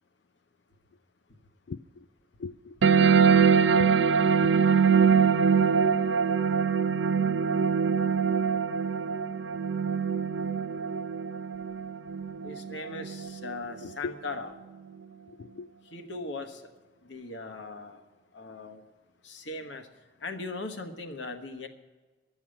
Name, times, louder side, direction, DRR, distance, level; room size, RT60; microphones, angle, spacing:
voice 1, 1.7-2.1 2.4-4.1 4.4-4.8 5.0-5.3 13.8-14.1 15.3-15.7, left 4 dB, 65° left, 13 dB, 0.3 m, -41 dB
sound 1, 2.8-13.8, right 6 dB, 85° right, 0.5 m, -23 dB
voice 2, 12.4-14.5 15.9-16.7 17.0-18.0 18.3-18.8 19.2-19.9 20.2-21.7, left 3 dB, 80° left, 6 dB, 1.3 m, -39 dB
11.5 x 7.1 x 9.6 m, 1.2 s
head